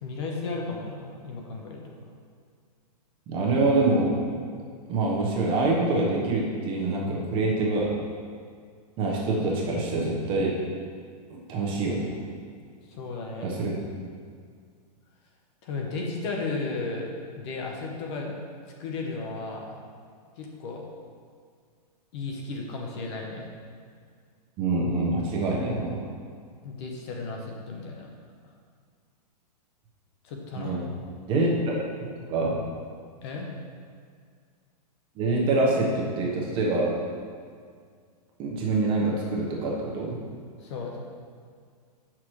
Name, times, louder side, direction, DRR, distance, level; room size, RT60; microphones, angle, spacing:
voice 1, 0.0-1.9 12.8-13.5 15.6-17.1 17.4-18.4 18.8-19.8 20.4-20.9 22.1-23.5 26.6-28.1 30.2-30.8 33.2-33.5 40.6-41.0, left 3 dB, 40° left, 0 dB, 1.0 m, -34 dB
voice 2, 3.3-4.2 4.9-7.9 9.0-10.6 11.3-12.1 13.4-13.7 24.6-26.0 30.5-30.8 31.3-31.8 32.3-32.6 35.1-37.0 38.4-40.2, right 2 dB, 25° right, -3 dB, 1.1 m, -25 dB
8.3 x 6.1 x 3.2 m, 2.1 s
hypercardioid pair, 155°, 21 cm